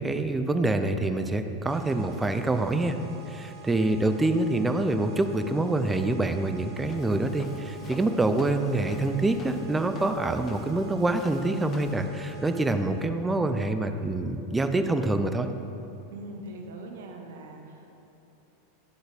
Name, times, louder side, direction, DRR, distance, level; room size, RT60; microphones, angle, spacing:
voice 1, 0.0-3.0 3.3-15.5, right 2 dB, 15° right, 8 dB, 0.5 m, -26 dB
sound 1, 1.7-13.1, right 5 dB, 55° right, 1.4 m, -49 dB
Walk footsteps, 6.8-12.1, left 3 dB, 35° left, 0.8 m, -47 dB
voice 2, 16.1-17.9, right 1 dB, 75° right, 2 dB, 1.0 m, -42 dB
10.5 x 3.9 x 5.1 m, 3.0 s
hypercardioid pair, 95°, 0 cm